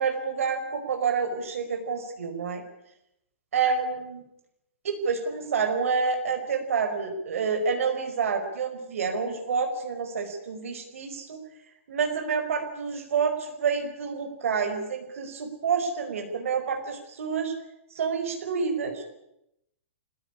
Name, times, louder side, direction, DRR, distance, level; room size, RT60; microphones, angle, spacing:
voice 1, 0.0-2.6 3.5-4.2 4.8-11.4 11.9-17.5 18.0-19.0, right 5 dB, 85° right, 4 dB, 5.3 m, -28 dB
26.5 x 17.0 x 9.9 m, 0.84 s
hypercardioid pair, 170°, 7 cm